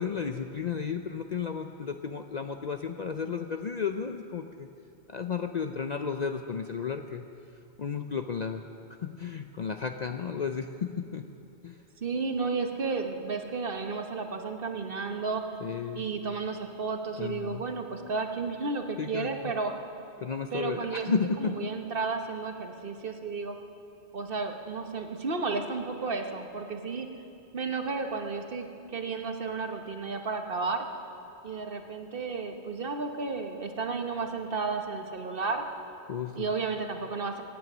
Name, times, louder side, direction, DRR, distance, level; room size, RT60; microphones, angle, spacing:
voice 1, 0.0-4.7 5.1-7.3 7.8-8.6 8.9-11.3 11.6-11.8 15.6-16.0 17.2-17.7 19.0-19.5 20.2-21.7 36.1-36.5, left 6 dB, 50° left, 6 dB, 0.5 m, -33 dB
voice 2, 12.0-15.4 15.9-19.7 20.5-23.6 24.1-27.1 27.5-30.9 31.4-35.6 36.4-37.4, right 4 dB, 55° right, 5 dB, 1.3 m, -33 dB
24.5 x 9.4 x 6.2 m, 2.6 s
omnidirectional pair, 1.2 m